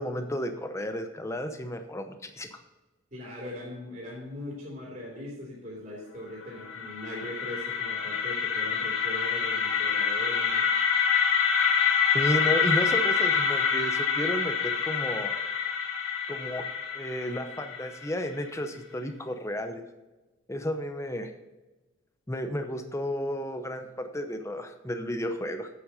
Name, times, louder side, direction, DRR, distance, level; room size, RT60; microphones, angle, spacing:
voice 1, 0.0-2.6 12.1-15.3 16.3-16.6 16.9-19.8 20.5-21.3 22.3-25.7, equal, 15° left, 7 dB, 0.7 m, -32 dB
voice 2, 3.1-10.6, left 1 dB, 40° right, -6 dB, 3.0 m, -40 dB
sound 1, 6.4-18.4, left 6 dB, 70° left, 2.1 m, -27 dB
8.5 x 7.7 x 5.4 m, 1.1 s
head